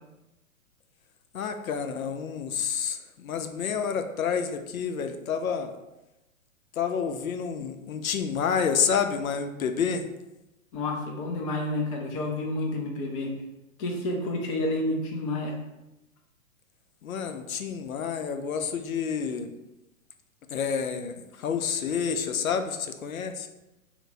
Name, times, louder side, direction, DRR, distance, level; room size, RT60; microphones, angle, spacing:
voice 1, 1.3-5.7 6.7-10.1 17.0-19.5 20.5-23.5, left 6 dB, 75° left, 7 dB, 0.5 m, -29 dB
voice 2, 10.7-13.3 13.8-15.6, left 1 dB, 25° left, 1 dB, 0.5 m, -29 dB
3.0 x 2.1 x 3.7 m, 0.96 s
figure-of-eight pair, 115°, 41 cm